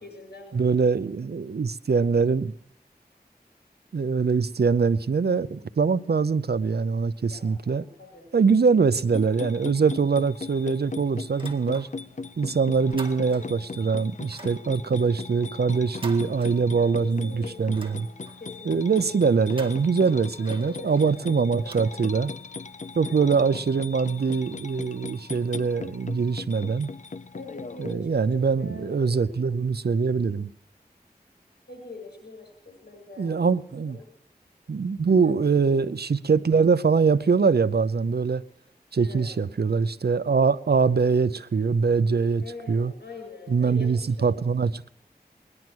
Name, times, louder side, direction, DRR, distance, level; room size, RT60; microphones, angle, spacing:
voice 1, 0.0-1.0 7.3-8.3 13.3-13.6 16.7-19.1 20.4-21.9 23.0-23.7 27.3-29.5 31.7-33.6 33.8-34.0 35.1-35.9 39.0-39.5 42.4-44.3, left 3 dB, 80° left, 7.8 m, -44 dB
voice 2, 0.5-2.5 3.9-7.8 8.3-11.9 12.4-18.1 18.7-22.3 22.9-26.9 27.8-30.5 33.2-34.0 34.7-38.4 38.9-42.9 43.5-44.9, right 5 dB, 75° right, 0.6 m, -23 dB
sound 1, 9.1-27.9, left 4 dB, 45° left, 0.5 m, -39 dB
sound 2, 11.3-12.2 12.5-13.7 14.2-17.1 17.4-18.5 19.3-22.5, right 3 dB, 30° right, 1.9 m, -47 dB
20.0 x 11.0 x 6.1 m
wide cardioid pair, 40°, 17 cm